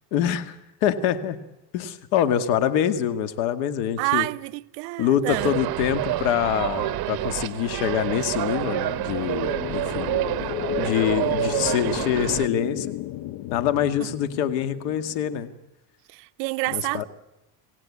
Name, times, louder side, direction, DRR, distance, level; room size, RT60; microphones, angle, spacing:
voice 1, 0.1-0.6 0.8-1.4 1.7-4.3 5.0-10.1 10.8-12.9 13.5-15.5 16.7-17.1, left 9 dB, 85° left, 1.9 m, -25 dB
voice 2, 4.0-5.5 14.0-14.1 16.1-17.0, right 25 dB, 80° right, 0.7 m, -28 dB
sound 1, 5.3-12.5, right 15 dB, 50° right, 1.0 m, -28 dB
sound 2, 9.4-15.5, left 14 dB, 65° left, 0.8 m, -33 dB
26.5 x 16.5 x 8.5 m
supercardioid pair, 100°, 48 cm